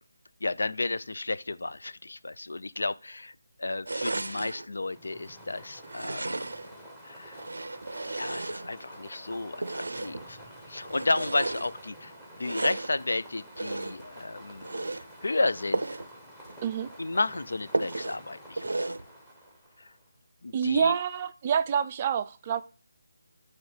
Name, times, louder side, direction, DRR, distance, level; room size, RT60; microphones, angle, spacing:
voice 1, 0.4-6.4 7.0-7.4 8.1-10.4 10.7-14.7 15.2-16.0 17.0-18.9 19.8-19.9 20.4-21.0, left 2 dB, 75° left, 0.4 m, -32 dB
sound 1, 3.8-4.7 5.8-6.8 7.3-9.0 9.6-10.3 10.8-11.7 12.4-13.0 13.5-14.1 14.6-15.1 15.7-16.1 16.5-16.6 16.9-17.0 17.7-18.2 18.6-19.1, right 2 dB, 90° right, 0.5 m, -33 dB
sound 2, 4.7-20.1, equal, 5° left, 0.9 m, -49 dB
sound 3, 8.6-14.5, left 1 dB, 35° left, 4.0 m, -59 dB
voice 2, 20.5-22.6, right 7 dB, 25° right, 0.3 m, -27 dB
8.9 x 3.1 x 4.8 m
figure-of-eight pair, 170°, 0 cm